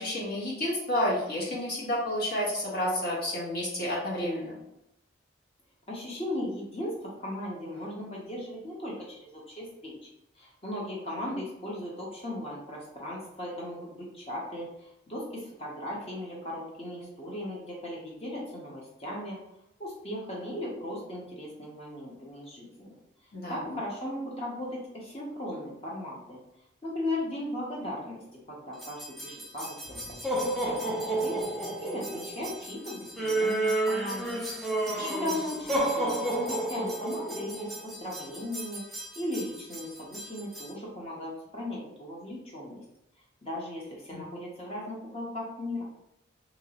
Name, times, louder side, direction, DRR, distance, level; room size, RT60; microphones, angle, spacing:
voice 1, 0.0-4.6 23.3-23.6 34.9-35.1 44.1-44.2, left 1 dB, 50° left, -5 dB, 1.1 m, -30 dB
voice 2, 5.9-10.1 10.4-19.4 19.8-23.0 23.5-26.4 26.8-28.2 28.5-31.4 31.8-34.4 35.0-42.8 43.4-45.8, left 1 dB, 30° left, -4 dB, 0.8 m, -37 dB
sound 1, 28.8-40.7, right 2 dB, ahead, 0.4 m, -32 dB
2.9 x 2.8 x 2.8 m, 0.83 s
head